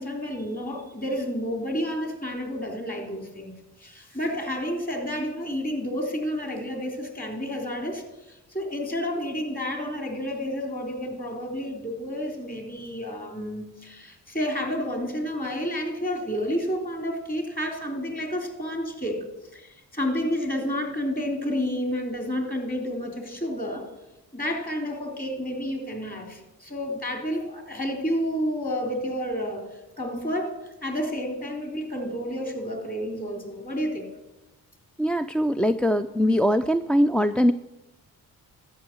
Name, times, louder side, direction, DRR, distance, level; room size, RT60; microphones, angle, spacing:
voice 1, 0.0-3.5 3.8-8.0 8.3-19.2 19.5-23.9 24.3-29.6 30.0-30.6 30.8-34.1, equal, 20° left, 3 dB, 3.7 m, -30 dB
voice 2, 35.0-37.5, equal, 5° left, 7 dB, 0.4 m, -22 dB
13.0 x 6.5 x 9.2 m, 1.0 s
supercardioid pair, 60°, 38 cm